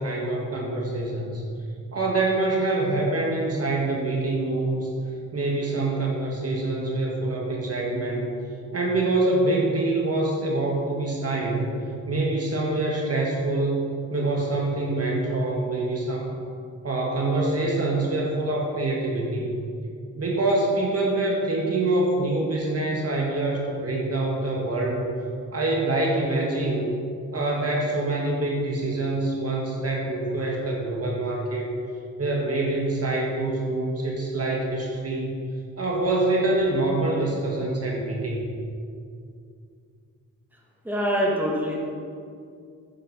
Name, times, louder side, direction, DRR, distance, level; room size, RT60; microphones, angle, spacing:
voice 1, 0.0-1.4 1.9-4.9 5.3-8.3 8.7-11.7 12.0-13.8 14.1-16.4 16.8-19.5 20.1-25.1 25.5-26.9 27.3-31.7 32.2-35.3 35.8-38.5, right 2 dB, 45° right, -1 dB, 1.7 m, -25 dB
voice 2, 40.8-41.8, equal, 5° right, -4 dB, 2.2 m, -24 dB
11.0 x 9.7 x 4.2 m, 2.4 s
wide cardioid pair, 90°, 33 cm